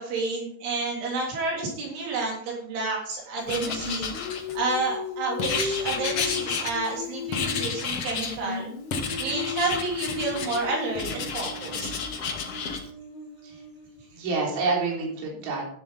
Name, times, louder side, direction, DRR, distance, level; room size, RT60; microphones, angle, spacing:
voice 1, 0.0-8.7 9.2-11.9, right 3 dB, 80° right, -2 dB, 5.7 m, -30 dB
Writing, 3.5-4.8 5.4-7.0 7.3-8.4 8.9-10.6 10.9-12.8, left 5 dB, 90° left, 1.3 m, -31 dB
Singing, 3.5-7.8 8.1-14.1, left 5 dB, 65° left, 3.6 m, -36 dB
voice 2, 14.1-15.6, right 3 dB, 55° right, -2 dB, 5.0 m, -28 dB
12.0 x 11.0 x 4.1 m, 0.65 s
omnidirectional pair, 5.4 m